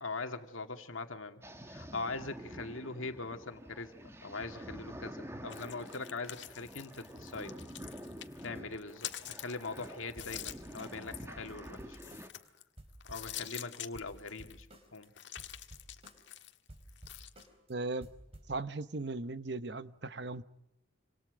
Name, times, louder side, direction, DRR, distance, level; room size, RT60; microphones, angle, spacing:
voice 1, 0.0-3.9 4.2-7.5 8.4-12.2 13.1-14.7 14.9-15.1, left 3 dB, 85° left, 6 dB, 2.2 m, -42 dB
sound 1, 1.4-12.3, equal, 15° right, 1.6 m, -48 dB
sound 2, 5.5-8.5 8.7-12.6 13.0-14.6 14.9-17.5, left 12 dB, 65° left, 1.6 m, -46 dB
sound 3, 6.3-6.4 6.6-6.7 6.9-7.0 7.2-7.3 7.6-7.7 7.9-8.0 8.2-8.3 8.5-8.6 8.9-9.0 9.2-9.6 9.8-9.9 10.2-12.5 12.8-15.1 15.4-16.4 16.7-17.7 18.0-18.6, right 1 dB, 30° right, 4.4 m, -54 dB
voice 2, 17.7-18.1 18.5-20.4, right 3 dB, 55° right, 13 dB, 1.0 m, -37 dB
28.0 x 26.5 x 5.1 m, 0.86 s
head